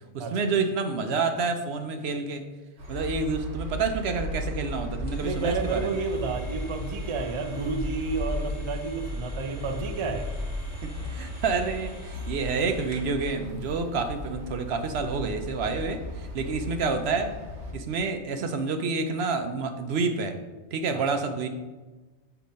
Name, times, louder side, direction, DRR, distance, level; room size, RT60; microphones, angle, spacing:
voice 1, 0.1-2.4 2.9-6.0 10.8-17.3 17.7-20.4 20.7-21.5, right 4 dB, 65° right, 7 dB, 0.8 m, -28 dB
sound 1, 2.8-17.7, left 1 dB, 90° right, 1.3 m, -35 dB
sound 2, 5.1-13.2, equal, 25° left, 0.9 m, -50 dB
voice 2, 5.2-10.3 20.9-21.0, right 4 dB, 40° right, 4 dB, 0.4 m, -30 dB
6.8 x 3.0 x 5.1 m, 1.2 s
omnidirectional pair, 1.2 m